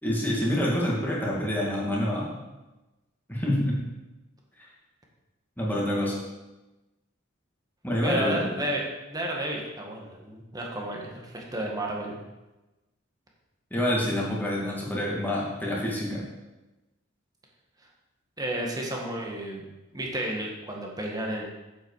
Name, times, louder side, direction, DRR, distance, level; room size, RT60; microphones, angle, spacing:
voice 1, 0.0-2.4 3.3-3.8 5.6-6.2 7.8-8.5 13.7-16.3, left 1 dB, 10° left, -4 dB, 2.4 m, -27 dB
voice 2, 8.0-8.8 9.1-12.2 18.4-19.6 19.9-21.4, right 1 dB, 20° right, -1 dB, 1.8 m, -32 dB
8.3 x 7.8 x 5.0 m, 1.1 s
head